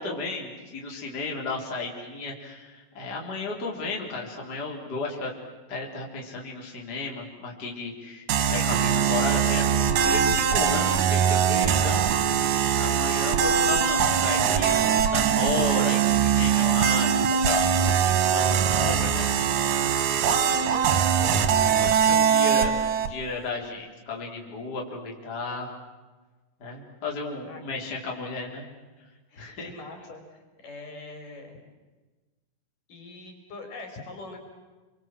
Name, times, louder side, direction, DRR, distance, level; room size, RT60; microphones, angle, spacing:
voice 1, 0.0-5.3 5.7-9.7 10.0-12.4 12.8-17.6 18.3-19.3 20.1-20.5 21.8-25.8 26.6-28.6 29.4-29.7, left 3 dB, 25° left, -1 dB, 4.3 m, -33 dB
sound 1, 8.3-23.1, right 8 dB, 60° right, 2.3 m, -22 dB
voice 2, 20.2-21.6 27.5-27.6 29.3-31.6 32.9-34.4, left 3 dB, 55° left, 4 dB, 5.6 m, -43 dB
30.0 x 24.5 x 7.7 m, 1.2 s
omnidirectional pair, 4.4 m